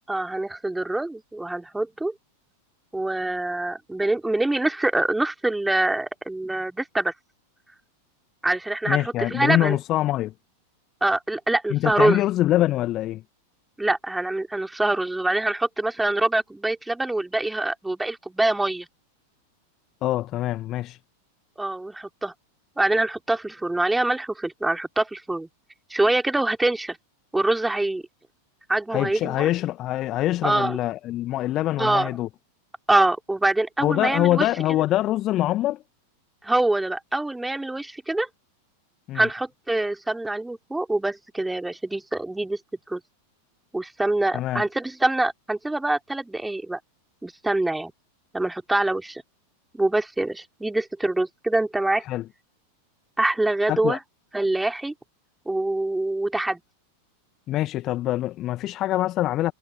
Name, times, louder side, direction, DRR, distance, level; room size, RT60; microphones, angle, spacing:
voice 1, 0.1-2.1 2.9-7.1 8.4-9.8 11.0-12.2 13.8-18.9 21.6-22.3 22.8-25.5 25.9-27.0 27.3-28.0 28.7-29.5 30.4-30.8 31.8-32.1 32.9-34.5 36.4-38.3 39.1-42.6 42.9-43.0 43.7-46.8 47.2-47.9 48.3-49.2 49.7-52.0 53.2-54.0 54.3-54.9 55.5-56.6, right 2 dB, 5° right, 4.6 m, -24 dB
voice 2, 8.9-10.3 11.7-13.2 20.0-21.0 28.9-32.3 33.8-35.8 39.1-39.3 44.3-44.6 52.1-52.2 53.7-54.0 57.5-59.5, left 14 dB, 35° left, 1.7 m, -24 dB
figure-of-eight pair, 90°, 0 cm